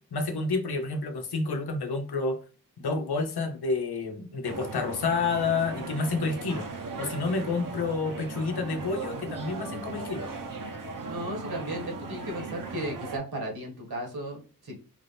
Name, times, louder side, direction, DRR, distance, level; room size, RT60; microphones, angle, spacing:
voice 1, 0.1-2.4 2.8-6.7 7.0-10.3, left 4 dB, 85° left, 6 dB, 0.9 m, -29 dB
sound 1, 4.4-13.2, right 4 dB, 60° right, 1.0 m, -38 dB
voice 2, 11.0-14.8, right 1 dB, 75° right, 1 dB, 2.0 m, -35 dB
5.0 x 2.7 x 3.4 m, 0.36 s
cardioid pair, 50°, 38 cm